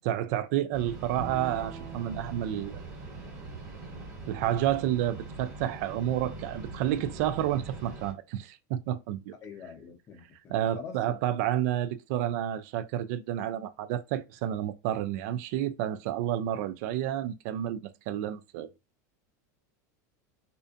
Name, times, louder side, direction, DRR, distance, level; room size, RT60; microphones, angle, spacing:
voice 1, 0.0-2.8 4.3-9.3 10.5-18.7, right 11 dB, 65° right, 0.3 m, -30 dB
sound 1, 0.7-8.1, right 3 dB, 35° right, 1.4 m, -42 dB
Bowed string instrument, 1.2-4.5, right 5 dB, 80° right, 0.8 m, -46 dB
voice 2, 9.4-11.2, left 6 dB, 30° left, 0.7 m, -45 dB
2.5 x 2.2 x 2.5 m
supercardioid pair, 130°, 9 cm